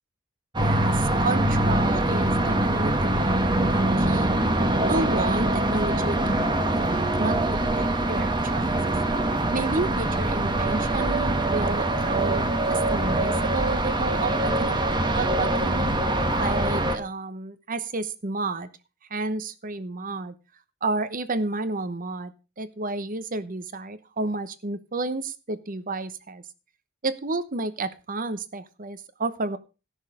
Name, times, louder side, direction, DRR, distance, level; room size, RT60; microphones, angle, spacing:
sound 1, 0.5-17.0, right 1 dB, 25° right, 1.2 m, -24 dB
voice 1, 0.6-4.3 4.9-8.8 9.5-15.9 16.4-18.7 19.1-20.3 20.8-26.4 27.0-29.6, right 2 dB, 45° right, 13 dB, 1.0 m, -31 dB
15.0 x 6.4 x 4.9 m, 0.31 s
head